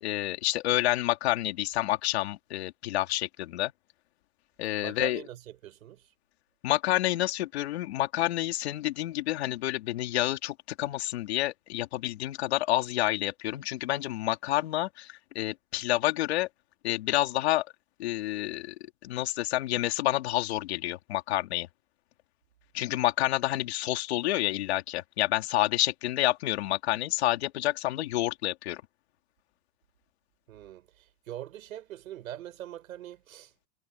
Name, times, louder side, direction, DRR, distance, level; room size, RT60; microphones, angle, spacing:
voice 1, 0.0-3.7 4.6-5.2 6.6-16.5 16.8-17.7 18.0-18.7 19.0-21.7 22.7-28.8, left 15 dB, 40° left, 2.9 m, -29 dB
voice 2, 4.8-6.1 30.5-33.5, right 12 dB, 55° right, 6.0 m, -42 dB
supercardioid pair, 175°, 49 cm